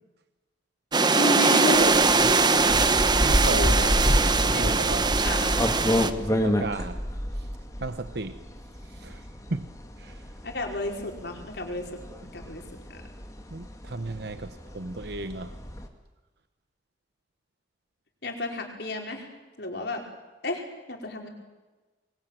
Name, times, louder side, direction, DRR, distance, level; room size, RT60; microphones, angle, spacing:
sound 1, 0.9-6.1, right 4 dB, 25° right, 1.1 m, -21 dB
voice 1, 1.1-3.0 3.4-3.9 4.5-4.8 5.2-5.7 10.4-12.0 12.3-13.0 18.2-19.3 19.6-20.0 20.4-20.6 20.9-21.3, left 1 dB, 60° left, 2 dB, 5.1 m, -32 dB
sound 2, 1.7-15.9, equal, 15° left, 2.2 m, -29 dB
voice 2, 3.2-3.6 4.3-5.1 6.2-7.0 7.3-7.5 7.8-8.4 8.8-9.7 10.0-10.3 13.5-15.6, right 2 dB, 60° right, 10 dB, 1.0 m, -35 dB
26.0 x 22.0 x 9.2 m, 1.2 s
head